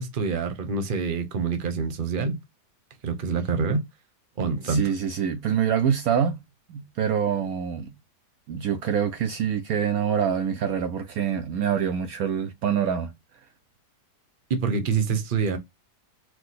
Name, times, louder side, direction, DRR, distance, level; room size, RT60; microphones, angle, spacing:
voice 1, 0.0-2.4 3.0-3.8 4.4-4.8 14.5-15.6, right 5 dB, 40° right, 0.9 m, -26 dB
voice 2, 4.6-6.4 6.7-7.9 8.5-13.1, right 8 dB, 70° right, 1.0 m, -25 dB
4.7 x 2.2 x 4.0 m
omnidirectional pair, 1.8 m